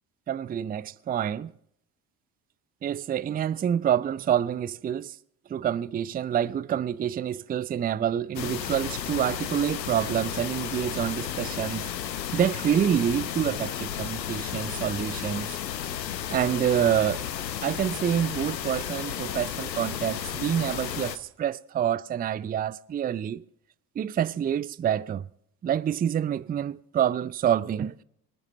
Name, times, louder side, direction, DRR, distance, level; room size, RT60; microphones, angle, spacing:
voice 1, 0.3-1.5 2.8-5.2 5.5-11.9 12.3-15.6 16.3-17.2 17.6-23.4 24.0-25.2 25.6-27.9, right 9 dB, 20° right, 0.4 m, -27 dB
sound 1, 8.4-21.2, left 10 dB, 90° left, 0.8 m, -33 dB
25.5 x 13.0 x 3.2 m
figure-of-eight pair, 55°, 49 cm